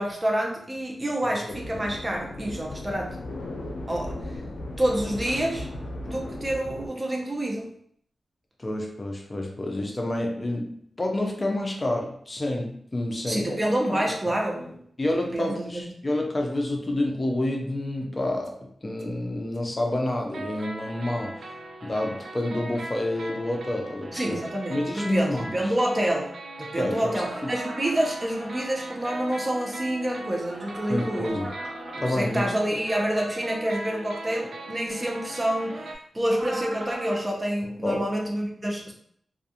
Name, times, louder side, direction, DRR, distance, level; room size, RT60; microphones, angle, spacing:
voice 1, 0.0-3.2 3.9-4.2 4.8-5.7 6.0-7.7 13.3-14.7 15.3-15.8 24.1-26.3 26.6-31.4 31.9-38.9, right 1 dB, 25° right, -1 dB, 0.7 m, -28 dB
sound 1, 1.5-6.9, left 1 dB, 80° left, 0.5 m, -36 dB
voice 2, 1.5-1.9 8.6-13.6 13.9-14.3 15.0-21.5 21.8-24.4 24.7-25.5 26.7-27.5 30.9-31.5 32.0-32.5 32.7-32.8 37.8-38.0, left 1 dB, 30° left, 1 dB, 0.5 m, -29 dB
sound 2, 17.3-18.1 18.4-18.5 19.0-19.1 19.5-19.6 20.3-36.0, right 2 dB, 75° right, 0.4 m, -39 dB
sound 3, 27.1-28.6 30.3-32.1 36.2-37.3, right 1 dB, 90° right, 1.0 m, -40 dB
2.4 x 2.3 x 2.7 m, 0.65 s
cardioid pair, 70°, 0 cm